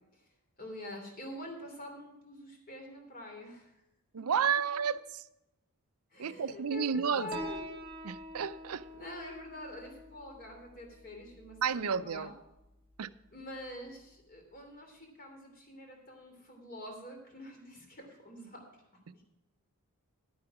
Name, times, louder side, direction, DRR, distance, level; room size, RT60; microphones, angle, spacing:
voice 1, 0.6-3.7 4.2-4.3 6.1-7.7 8.9-12.3 13.3-18.6, left 1 dB, 40° left, 3.0 m, -46 dB
voice 2, 4.1-5.2 6.2-7.4 8.0-8.9 11.6-12.3 13.0-13.1 19.1-19.2, right 7 dB, 80° right, 0.5 m, -32 dB
Piano, 7.3-14.4, equal, 25° right, 1.3 m, -48 dB
11.5 x 9.6 x 4.9 m
head